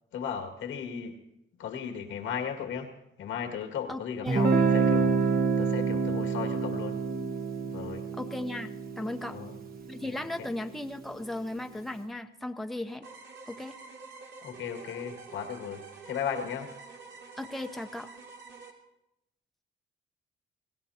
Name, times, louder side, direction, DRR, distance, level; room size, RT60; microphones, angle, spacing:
voice 1, 0.1-1.2 1.6-2.9 3.2-7.0 7.6-8.0 9.3-9.6 10.0-10.5 14.4-16.7, left 7 dB, 85° left, 4 dB, 2.1 m, -36 dB
voice 2, 3.9-4.5 8.2-9.4 9.9-13.0 13.5-13.8 17.4-18.1, left 1 dB, ahead, 6 dB, 0.8 m, -36 dB
Guitar, 4.3-10.0, right 5 dB, 50° right, 1.3 m, -27 dB
sound 1, 13.0-18.7, right 5 dB, 65° right, 2.6 m, -48 dB
24.0 x 17.0 x 2.9 m, 0.85 s
cardioid pair, 90°, 20 cm